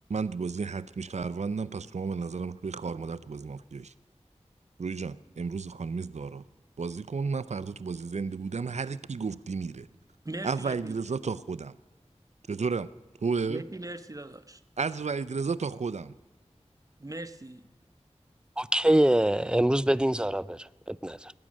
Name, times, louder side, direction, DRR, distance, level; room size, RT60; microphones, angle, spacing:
voice 1, 0.1-3.9 4.8-6.4 6.8-9.9 10.4-11.8 12.5-12.9 13.2-13.6 14.8-16.1, right 5 dB, 80° right, 0.5 m, -32 dB
voice 2, 10.2-11.0 13.5-14.6 17.0-17.7, right 2 dB, 30° right, 0.8 m, -40 dB
voice 3, 18.6-21.3, right 1 dB, 10° right, 0.4 m, -24 dB
19.0 x 8.8 x 6.3 m
wide cardioid pair, 50°, 12 cm